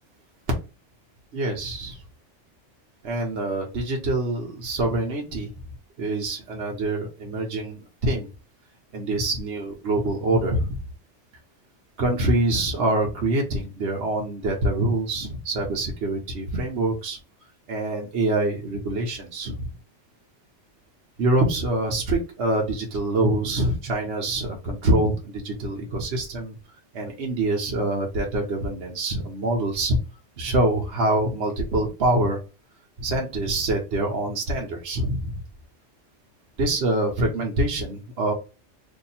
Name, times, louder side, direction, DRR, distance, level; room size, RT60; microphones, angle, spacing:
voice 1, 1.3-2.0 3.0-5.5 6.0-8.3 8.9-10.8 12.0-17.2 17.7-19.7 21.2-26.6 26.9-30.0 30.4-32.4 33.0-35.4 36.6-38.3, right 1 dB, 65° right, -1 dB, 1.1 m, -25 dB
2.8 x 2.7 x 4.0 m, 0.30 s
omnidirectional pair, 1.2 m